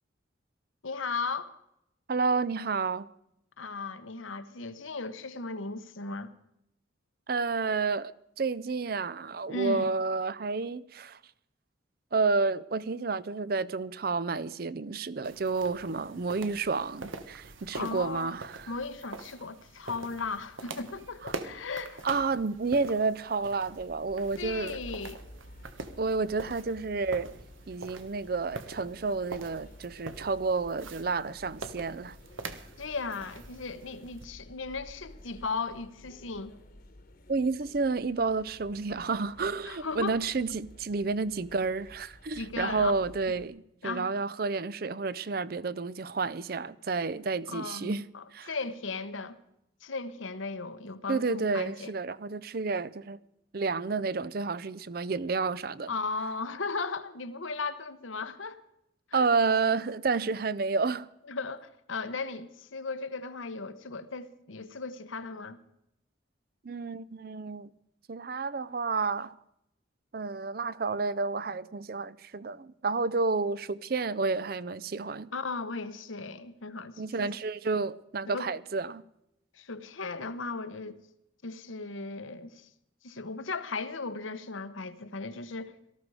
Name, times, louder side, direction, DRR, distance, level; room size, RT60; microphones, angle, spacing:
voice 1, 0.8-1.5 3.6-6.3 9.5-9.9 17.7-18.4 18.7-22.1 24.4-25.2 32.8-36.5 39.6-40.2 42.3-42.9 43.8-44.1 47.5-49.4 49.8-51.9 55.9-58.6 59.1-59.3 61.3-65.6 75.3-77.3 78.3-78.5 79.5-81.0 81.4-82.7 83.0-85.8, left 4 dB, 85° left, 1.1 m, -36 dB
voice 2, 2.1-3.1 7.3-11.2 12.1-18.7 22.0-24.8 26.0-27.3 27.7-32.2 37.3-48.0 48.3-48.5 51.1-53.2 53.5-55.9 59.1-61.1 66.6-67.7 68.1-69.3 70.1-75.3 77.0-79.0, right 4 dB, 50° right, 0.5 m, -30 dB
sound 1, 15.2-34.3, right 3 dB, 85° right, 1.3 m, -45 dB
sound 2, 23.6-43.5, left 1 dB, 45° left, 1.3 m, -53 dB
18.0 x 14.0 x 4.8 m
head